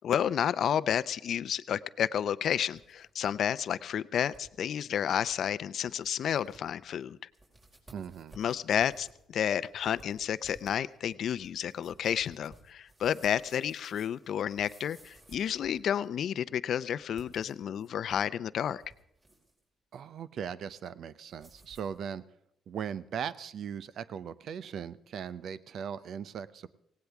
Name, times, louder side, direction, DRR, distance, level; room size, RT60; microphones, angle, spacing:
voice 1, 0.0-7.2 8.4-18.8, left 9 dB, 65° left, 16 dB, 0.5 m, -31 dB
sound 1, 2.4-3.3 3.6-3.7 4.3-4.5 4.9-5.0 5.2-5.5 6.0-6.1 6.4-6.9 7.3-16.2 17.0-18.3 18.6-19.6 21.3-22.0, right 2 dB, 30° right, 4.9 m, -57 dB
voice 2, 7.9-8.4 19.9-22.2 22.7-26.7, right 8 dB, 65° right, 16 dB, 0.6 m, -39 dB
18.5 x 17.5 x 3.5 m, 0.80 s
cardioid pair, 90°, 0 cm